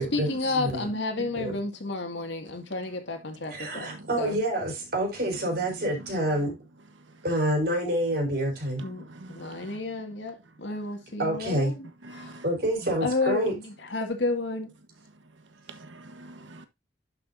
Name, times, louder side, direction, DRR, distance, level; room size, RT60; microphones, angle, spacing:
voice 1, 0.0-4.4 8.8-9.0 9.3-12.4 13.0-14.7, left 2 dB, 75° left, 2.2 m, -31 dB
voice 2, 3.5-6.5 7.2-8.8 11.2-11.7 12.4-13.5, right 1 dB, 55° right, 4.2 m, -27 dB
voice 3, 12.1-12.4 15.7-16.7, right 2 dB, 85° right, 1.3 m, -46 dB
11.5 x 6.0 x 2.7 m
head